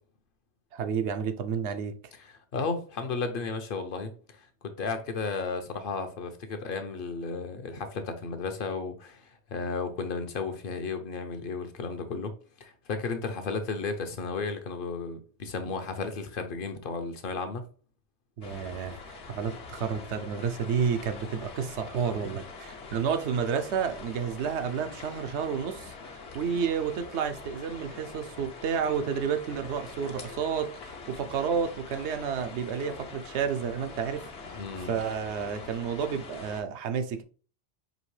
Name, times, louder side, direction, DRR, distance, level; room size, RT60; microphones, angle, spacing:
voice 1, 0.7-1.9 18.4-37.2, right 7 dB, 80° right, 0.9 m, -31 dB
voice 2, 2.2-12.3 12.6-17.6 34.5-34.9, left 4 dB, 60° left, 0.8 m, -34 dB
sound 1, 18.4-36.6, left 4 dB, 75° left, 1.1 m, -44 dB
5.2 x 2.8 x 3.1 m
omnidirectional pair, 1.1 m